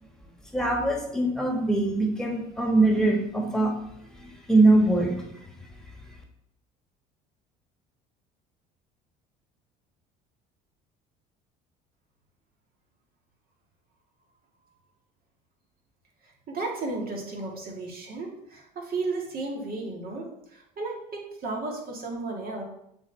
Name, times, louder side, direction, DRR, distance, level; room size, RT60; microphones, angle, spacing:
voice 1, 0.5-3.7 4.2-5.2, right 2 dB, 5° left, 1 dB, 1.8 m, -22 dB
voice 2, 16.5-22.6, right 3 dB, 45° right, 0 dB, 2.1 m, -34 dB
7.1 x 4.1 x 3.4 m, 0.75 s
hypercardioid pair, 65°, 21 cm